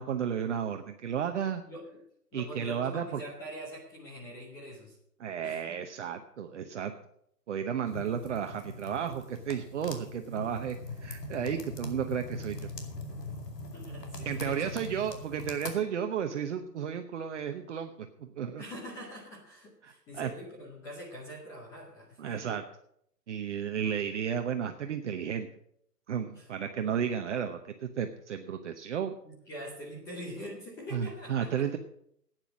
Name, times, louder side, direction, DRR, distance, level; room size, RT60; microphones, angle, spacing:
voice 1, 0.0-1.6 2.3-3.2 5.2-6.9 7.5-12.7 14.2-18.6 19.8-20.3 22.2-22.6 23.3-25.5 26.1-29.1 30.9-31.8, right 8 dB, 50° right, 6 dB, 0.9 m, -33 dB
voice 2, 1.7-2.0 2.3-5.0 5.4-5.6 13.7-14.7 18.6-22.5 23.8-23.9 26.3-26.5 29.2-31.7, equal, 5° left, -3 dB, 0.6 m, -44 dB
sound 1, 7.9-15.7, left 2 dB, 85° left, 2.6 m, -41 dB
11.5 x 9.2 x 6.2 m, 0.72 s
hypercardioid pair, 145°, 47 cm